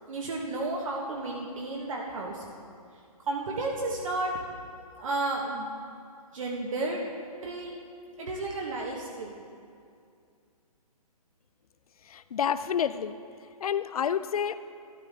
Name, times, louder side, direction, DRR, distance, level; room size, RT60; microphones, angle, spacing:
voice 1, 0.1-2.4 3.3-4.3 5.0-5.7 6.3-7.0 7.4-7.7 8.2-9.4, right 2 dB, 55° right, -1 dB, 1.3 m, -32 dB
voice 2, 12.0-13.2 13.6-14.6, left 8 dB, 65° left, 13 dB, 0.5 m, -29 dB
12.5 x 11.5 x 3.6 m, 2.4 s
hypercardioid pair, 155°, 20 cm